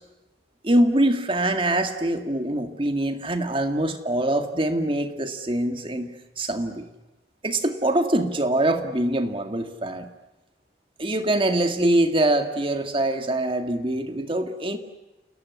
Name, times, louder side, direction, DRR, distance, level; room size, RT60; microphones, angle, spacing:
voice 1, 0.6-6.1 6.4-6.9 7.4-10.1 11.0-14.8, right 1 dB, 30° right, 7 dB, 2.0 m, -24 dB
29.5 x 18.5 x 9.6 m, 1.1 s
head